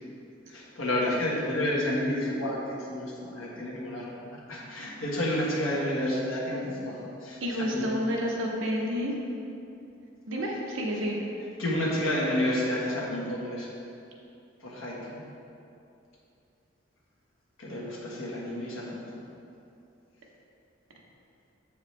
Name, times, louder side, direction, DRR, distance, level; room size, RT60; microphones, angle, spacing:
voice 1, 0.5-2.6 2.9-7.8 11.6-13.7 14.6-15.2 17.6-19.0, left 1 dB, 90° left, -5 dB, 1.4 m, -30 dB
voice 2, 7.4-9.1 10.3-11.2, equal, 80° right, -2 dB, 1.0 m, -29 dB
7.3 x 4.8 x 3.3 m, 2.7 s
head